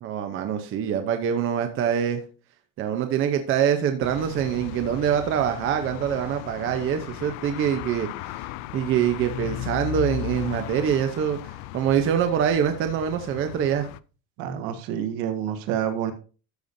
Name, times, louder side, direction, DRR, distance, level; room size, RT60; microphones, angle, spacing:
voice 1, 0.0-2.2 2.8-8.4 8.7-13.9, right 9 dB, 30° right, 7 dB, 0.7 m, -24 dB
sound 1, 4.0-14.0, left 16 dB, 75° left, 0.5 m, -36 dB
voice 2, 14.4-16.1, right 9 dB, 60° right, 7 dB, 1.5 m, -28 dB
13.0 x 6.8 x 2.6 m, 0.37 s
cardioid pair, 165°, 40 cm